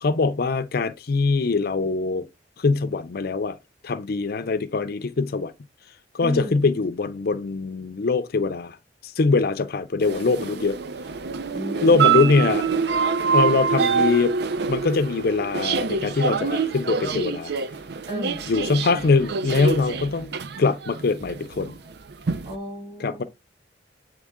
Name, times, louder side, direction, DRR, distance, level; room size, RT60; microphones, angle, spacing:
voice 1, 0.0-2.3 2.6-3.6 3.8-5.5 6.1-8.8 9.0-10.8 11.8-12.6 13.3-14.3 14.7-17.5 18.5-20.3 20.6-21.8 23.0-23.2, left 4 dB, 60° left, 0.5 m, -22 dB
voice 2, 6.2-6.7 11.5-12.3 18.1-18.5 22.4-23.3, right 1 dB, 30° right, 3.3 m, -33 dB
sound 1, 10.0-22.6, right 6 dB, 65° right, 0.5 m, -26 dB
8.3 x 3.3 x 3.6 m
head